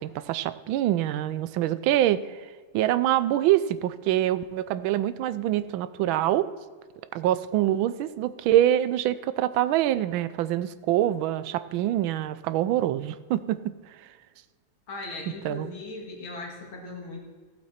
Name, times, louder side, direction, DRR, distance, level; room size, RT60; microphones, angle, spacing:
voice 1, 0.0-2.5 2.7-6.5 7.1-13.7 15.4-15.7, right 13 dB, 85° right, 14 dB, 1.4 m, -25 dB
voice 2, 14.9-17.2, left 3 dB, 90° left, 0 dB, 2.9 m, -38 dB
15.0 x 7.9 x 4.2 m, 1.5 s
omnidirectional pair, 2.1 m